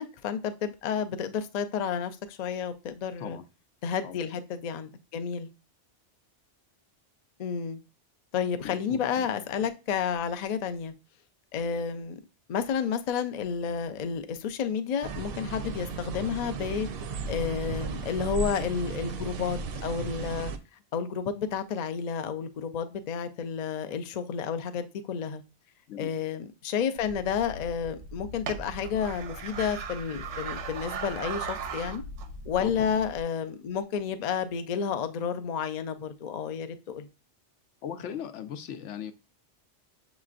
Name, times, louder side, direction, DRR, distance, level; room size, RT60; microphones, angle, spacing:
voice 1, 0.0-3.4 3.8-5.5 7.4-7.8 8.3-10.9 11.5-12.2 12.5-16.9 17.3-20.5 20.9-25.4 26.0-32.0 32.5-37.1, left 7 dB, 60° left, 0.4 m, -31 dB
voice 2, 8.6-9.3 25.9-26.1 32.6-32.7 37.8-39.1, left 9 dB, 80° left, 0.9 m, -38 dB
sound 1, 15.0-20.6, right 4 dB, 65° right, 0.7 m, -35 dB
sound 2, 27.0-33.2, right 4 dB, 85° right, 0.9 m, -38 dB
6.5 x 3.0 x 2.4 m
omnidirectional pair, 1.2 m